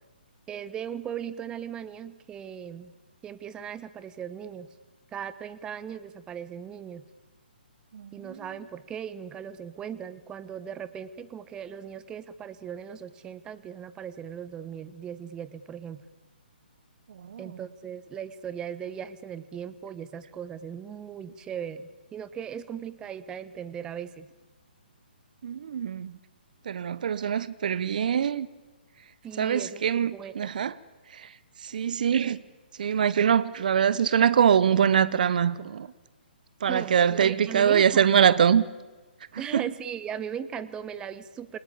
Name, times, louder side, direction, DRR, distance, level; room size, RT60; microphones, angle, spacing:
voice 1, 0.5-2.9 3.2-4.7 5.1-7.0 8.1-16.0 17.4-24.3 29.2-30.5 36.7-38.4 39.4-41.6, right 8 dB, 15° right, 1.2 m, -38 dB
voice 2, 25.4-26.1 26.7-28.5 29.4-30.7 31.1-31.3 31.6-32.4 32.8-35.9 36.6-38.6 39.3-39.6, right 8 dB, 55° right, 1.0 m, -23 dB
28.5 x 24.0 x 8.7 m
figure-of-eight pair, 130°, 5 cm